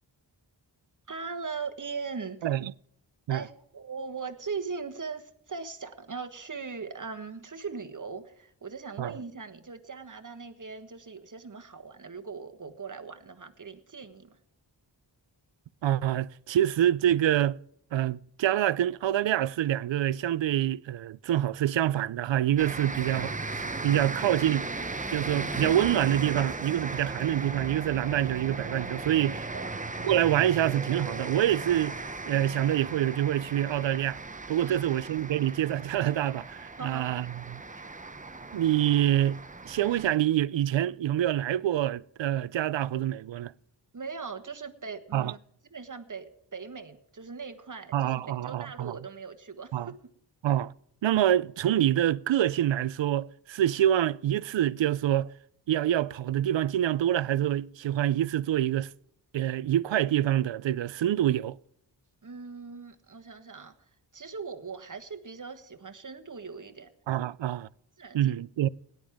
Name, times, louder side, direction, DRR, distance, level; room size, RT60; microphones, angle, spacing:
voice 1, 1.1-2.4 3.3-14.3 23.1-23.3 29.5-29.7 34.6-34.8 36.8-37.2 43.9-45.4 45.7-49.9 62.2-63.7 64.1-66.9 68.0-68.3, right 5 dB, 45° right, 1.3 m, -40 dB
voice 2, 2.4-2.7 3.3-3.4 9.0-9.1 15.8-17.6 17.9-24.7 25.1-29.5 30.0-34.2 34.5-37.6 38.5-43.5 45.1-45.4 47.9-49.0 49.7-49.9 50.4-50.7 51.0-55.3 55.7-58.9 59.3-61.6 67.1-67.7 68.1-68.7, right 12 dB, 80° right, 0.5 m, -26 dB
sound 1, 22.6-40.2, right 3 dB, 20° right, 0.7 m, -37 dB
18.0 x 10.5 x 3.6 m
wide cardioid pair, 75°, 44 cm